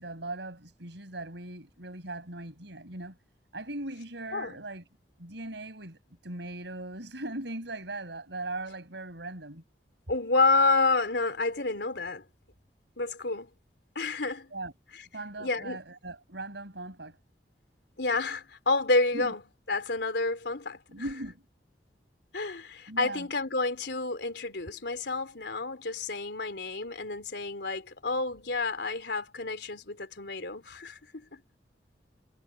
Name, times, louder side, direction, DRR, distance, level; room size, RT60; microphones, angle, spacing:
voice 1, 0.0-3.2 3.5-4.8 5.2-9.6 14.5-14.7 15.1-17.2 19.1-19.3 20.9-21.4 22.9-23.3, right 2 dB, 90° right, 6.3 m, -39 dB
voice 2, 10.1-12.2 13.0-13.5 13.9-14.5 15.4-15.8 18.0-19.4 19.7-20.8 22.3-31.4, left 3 dB, 80° left, 3.1 m, -29 dB
head